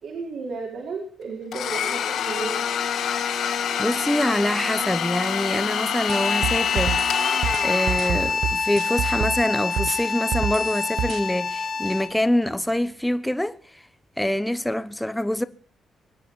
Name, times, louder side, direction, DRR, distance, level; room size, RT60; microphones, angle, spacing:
voice 1, 0.0-2.7, right 4 dB, 60° right, 4.7 m, -33 dB
Domestic sounds home sounds, 1.5-8.6, left 8 dB, 75° left, 5.1 m, -27 dB
voice 2, 3.8-7.0 7.6-13.8 14.2-15.4, left 1 dB, 5° left, 0.9 m, -25 dB
sound 1, 6.1-12.3, left 5 dB, 40° left, 1.9 m, -26 dB
sound 2, 6.1-9.4 9.8-11.2, right 9 dB, 80° right, 0.9 m, -28 dB
23.5 x 9.8 x 6.3 m
cardioid pair, 145°, 0 cm